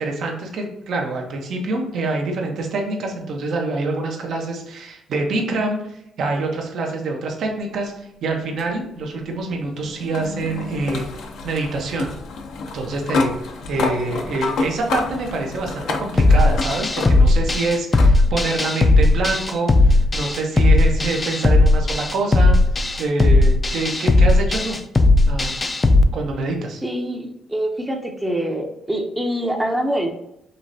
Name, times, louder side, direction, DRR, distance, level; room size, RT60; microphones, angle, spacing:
voice 1, 0.0-12.1 12.7-24.8 25.3-25.6 26.1-26.8, right 3 dB, 70° right, 1 dB, 0.9 m, -26 dB
sound 1, 8.6-17.5 17.9-18.1 19.4-19.5 22.4-22.5, left 4 dB, 75° left, 0.6 m, -29 dB
sound 2, 16.2-26.0, left 2 dB, 25° left, 0.4 m, -16 dB
voice 2, 26.8-30.1, right 1 dB, 10° right, 2 dB, 0.6 m, -25 dB
5.5 x 3.2 x 2.7 m, 0.82 s
cardioid pair, 90°, 0 cm